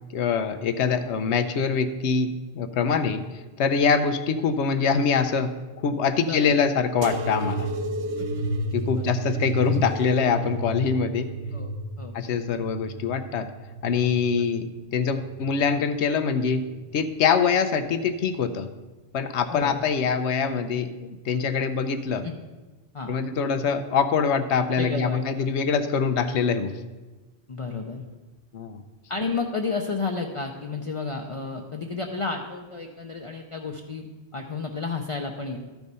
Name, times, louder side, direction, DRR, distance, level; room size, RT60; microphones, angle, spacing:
voice 1, 0.1-5.5 5.8-7.7 8.7-11.3 12.1-13.5 13.8-16.6 16.9-18.7 19.1-22.2 23.1-26.7 28.5-28.8, left 6 dB, 90° left, 9 dB, 1.0 m, -24 dB
voice 2, 6.2-6.5 8.2-8.5 8.9-9.1 11.5-11.7 12.0-12.2 19.5-19.8 22.2-22.3 22.9-23.2 24.8-25.5 27.5-28.0 29.1-35.6, left 4 dB, 40° left, 2 dB, 0.6 m, -31 dB
sound 1, 7.0-14.2 14.8-15.5 16.3-16.8 17.8-17.9, right 1 dB, 80° right, 0.9 m, -32 dB
12.5 x 4.6 x 5.4 m, 1.2 s
omnidirectional pair, 1.1 m